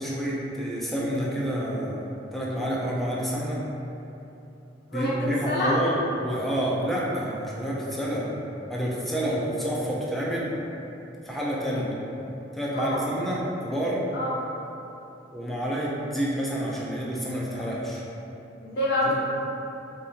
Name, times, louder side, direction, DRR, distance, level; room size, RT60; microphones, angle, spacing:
voice 1, 0.0-3.6 4.9-8.3 8.7-10.5 11.2-12.0 12.5-14.1 15.3-18.0, equal, ahead, -6 dB, 0.5 m, -28 dB
voice 2, 18.6-19.1, left 1 dB, 65° left, -6 dB, 0.9 m, -27 dB
4.9 x 2.6 x 2.8 m, 2.9 s
head